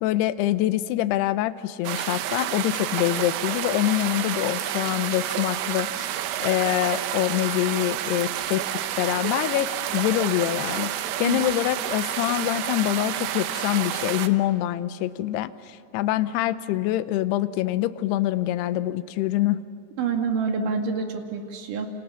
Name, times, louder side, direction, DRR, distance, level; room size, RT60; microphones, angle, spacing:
voice 1, 0.0-6.1 6.4-8.6 9.0-19.6, left 14 dB, 75° left, 13 dB, 2.6 m, -25 dB
sound 1, 1.9-14.3, right 12 dB, 85° right, 3.2 m, -29 dB
voice 2, 20.0-21.9, right 5 dB, 55° right, 3 dB, 3.4 m, -27 dB
29.5 x 27.5 x 7.2 m, 2.3 s
omnidirectional pair, 5.1 m